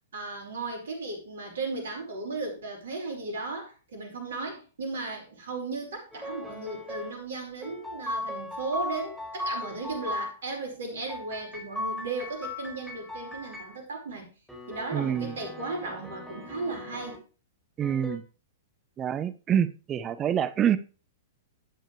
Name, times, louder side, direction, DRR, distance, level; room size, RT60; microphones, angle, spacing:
voice 1, 0.1-14.3 14.7-17.2, right 3 dB, 65° right, 2 dB, 5.0 m, -36 dB
sound 1, 6.1-7.1 7.6-10.3 11.1-13.8 14.5-17.2 17.8-18.2, left 2 dB, ahead, 4.8 m, -38 dB
voice 2, 14.9-15.4 17.8-18.2 19.0-20.8, right 9 dB, 25° right, 15 dB, 0.8 m, -26 dB
12.5 x 9.0 x 3.3 m, 0.34 s
figure-of-eight pair, 105°, 0 cm